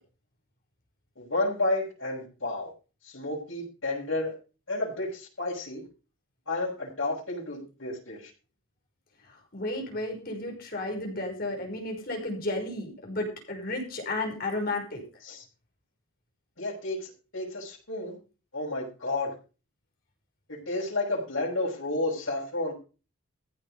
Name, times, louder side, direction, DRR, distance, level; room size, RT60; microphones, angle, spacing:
voice 1, 1.2-2.7 3.0-4.3 4.7-5.8 6.5-8.3 15.2-15.4 16.6-18.2 18.5-19.3 20.5-22.7, left 2 dB, 70° left, -5 dB, 5.8 m, -31 dB
voice 2, 9.5-15.0, left 2 dB, 45° left, 1 dB, 5.8 m, -33 dB
15.0 x 7.9 x 5.6 m, 0.33 s
head